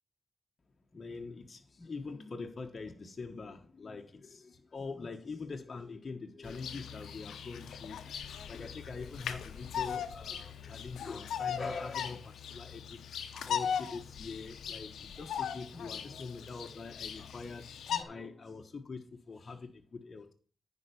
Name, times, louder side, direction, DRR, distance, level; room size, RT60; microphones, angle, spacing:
voice 1, 0.9-13.0 13.3-20.3, left 4 dB, 50° left, 1.3 m, -44 dB
Bird vocalization bird call bird song, 6.4-18.0, left 8 dB, 90° left, 0.8 m, -39 dB
9.8 x 4.6 x 7.0 m
cardioid pair, 55°, 0 cm